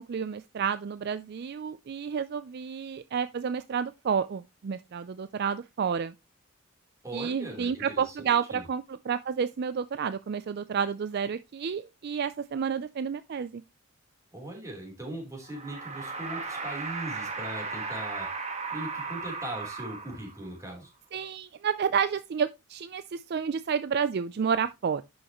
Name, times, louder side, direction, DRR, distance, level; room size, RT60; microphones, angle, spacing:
voice 1, 0.0-6.1 7.1-13.6 21.1-25.0, right 6 dB, 50° right, 0.4 m, -30 dB
voice 2, 7.0-8.6 14.3-18.3 18.7-20.9, right 1 dB, 15° right, 3.5 m, -39 dB
sound 1, 15.4-20.5, right 4 dB, 35° right, 1.5 m, -36 dB
10.5 x 6.3 x 3.0 m
head